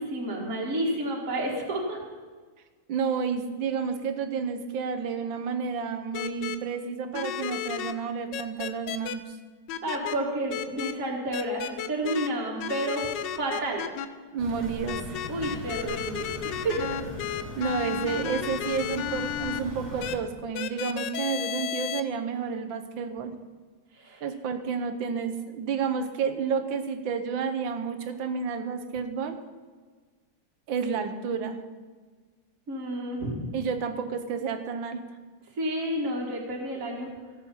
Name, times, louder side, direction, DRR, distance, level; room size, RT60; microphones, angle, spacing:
voice 1, 0.0-2.0 9.8-13.1 13.4-13.8 15.3-17.0 23.9-24.2 32.7-33.5 35.6-37.1, right 1 dB, 40° right, -2 dB, 2.3 m, -30 dB
voice 2, 2.9-9.2 14.3-15.6 17.6-23.3 24.2-29.4 30.7-31.6 33.5-35.0, right 6 dB, 65° right, 9 dB, 1.6 m, -30 dB
sound 1, 6.1-6.6 7.1-7.9 8.3-9.1 9.7-10.2 10.5-10.9 11.3-12.3 12.6-14.1 14.9-19.6 20.0-20.1 20.5-22.0, left 10 dB, 70° left, 1.2 m, -33 dB
sound 2, 14.4-20.2, left 2 dB, 45° left, 3.2 m, -40 dB
17.0 x 7.5 x 5.6 m, 1.5 s
omnidirectional pair, 2.4 m